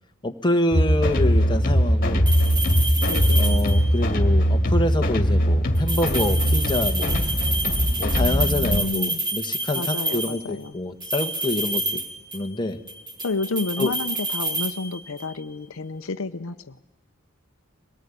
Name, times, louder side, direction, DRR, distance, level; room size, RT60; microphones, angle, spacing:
voice 1, 0.2-2.3 3.3-7.1 8.0-12.0 12.3-12.8 13.8-13.9, left 1 dB, 20° left, 5 dB, 1.4 m, -26 dB
sound 1, 0.7-8.8, equal, 45° left, 2.2 m, -21 dB
sound 2, 2.3-4.0 5.8-10.5 11.0-12.6 12.9-15.3, right 2 dB, 20° right, 2.3 m, -28 dB
voice 2, 3.1-3.6 8.2-9.2 9.7-10.8 13.2-16.8, left 3 dB, 70° left, 10 dB, 0.8 m, -30 dB
23.0 x 19.0 x 9.8 m, 1.1 s
head